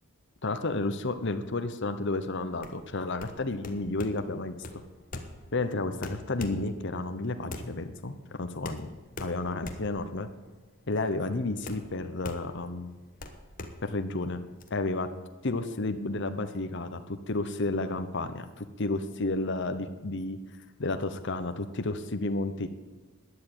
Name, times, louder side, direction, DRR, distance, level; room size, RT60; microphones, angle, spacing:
voice 1, 0.4-4.6 5.5-8.9 9.2-10.3 10.9-12.9 13.8-14.4 14.7-15.1 15.4-20.4 20.8-22.7, left 2 dB, 55° left, 8 dB, 0.9 m, -31 dB
sound 1, 2.5-14.7, left 2 dB, 40° left, 1.3 m, -43 dB
12.5 x 9.9 x 8.8 m, 1.3 s
head